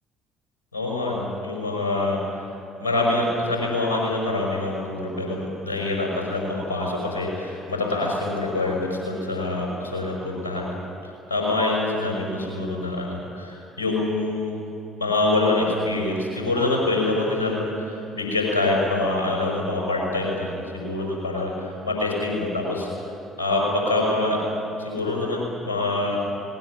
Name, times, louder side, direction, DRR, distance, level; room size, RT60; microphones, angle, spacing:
voice 1, 0.7-2.5 2.8-14.5 15.0-22.9 23.4-24.4 24.8-26.2, left 2 dB, 90° left, -1 dB, 5.5 m, -25 dB
19.5 x 19.5 x 9.7 m, 2.9 s
hypercardioid pair, 55°, 0 cm